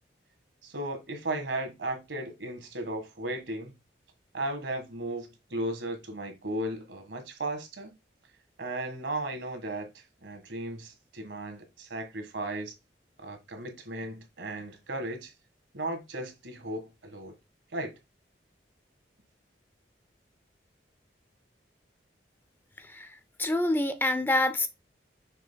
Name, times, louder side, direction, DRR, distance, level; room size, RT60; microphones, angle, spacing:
voice 1, 0.6-3.8 4.3-7.9 8.6-12.7 13.2-15.3 15.7-17.3 17.7-18.0, right 1 dB, 80° right, 1.6 m, -35 dB
voice 2, 22.8-24.7, left 2 dB, 10° left, 0.4 m, -27 dB
6.5 x 6.5 x 2.2 m
head